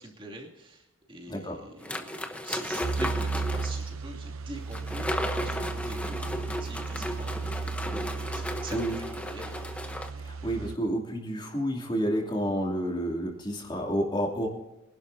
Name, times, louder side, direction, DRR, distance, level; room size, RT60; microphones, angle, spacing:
voice 1, 0.0-7.8 8.3-8.8 9.2-9.7, right 2 dB, 25° right, -1 dB, 2.6 m, -44 dB
voice 2, 1.3-1.6 8.7-9.0 10.2-14.5, equal, 20° left, 0 dB, 2.7 m, -30 dB
sound 1, 1.8-3.8 4.7-10.1, left 1 dB, 5° left, 0.9 m, -34 dB
sound 2, 2.8-10.8, right 4 dB, 75° right, 0.7 m, -35 dB
24.5 x 11.5 x 2.7 m, 0.91 s
head